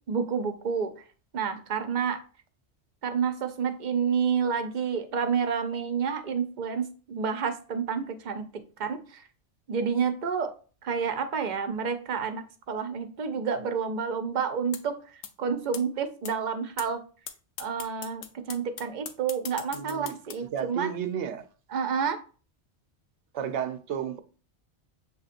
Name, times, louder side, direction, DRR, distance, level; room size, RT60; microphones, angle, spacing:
voice 1, 0.1-0.9 1.3-2.2 3.0-9.2 9.7-10.5 10.8-17.0 17.6-20.9 21.7-22.2, right 6 dB, 50° right, 0.6 m, -29 dB
sound 1, 14.7-14.8 15.2-15.3 15.7-15.8 16.2-16.3 16.8-16.9 17.3-17.4 17.6-20.3, left 8 dB, 90° left, 0.9 m, -38 dB
voice 2, 19.7-20.1 20.5-21.5 23.3-24.2, right 8 dB, 85° right, 0.9 m, -32 dB
7.0 x 2.8 x 2.5 m
omnidirectional pair, 1.2 m